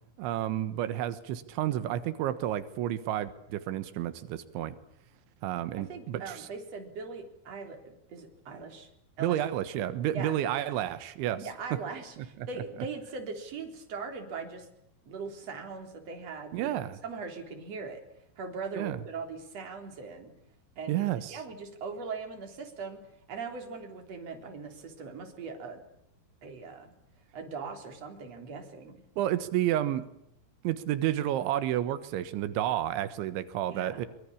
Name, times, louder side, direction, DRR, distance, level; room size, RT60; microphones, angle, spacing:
voice 1, 0.2-4.8 5.4-6.5 9.2-11.4 12.2-12.3 16.5-17.0 18.8-19.0 20.9-21.4 29.2-30.1 30.6-34.1, right 12 dB, 90° right, 12 dB, 3.7 m, -30 dB
voice 2, 5.9-8.9 9.2-9.4 10.1-10.4 11.4-14.7 15.1-18.0 18.4-20.3 20.8-23.0 23.3-25.8 26.4-26.9 27.3-29.0 33.7-34.1, right 4 dB, 35° right, 5 dB, 4.5 m, -40 dB
24.0 x 24.0 x 8.5 m, 0.76 s
omnidirectional pair, 5.2 m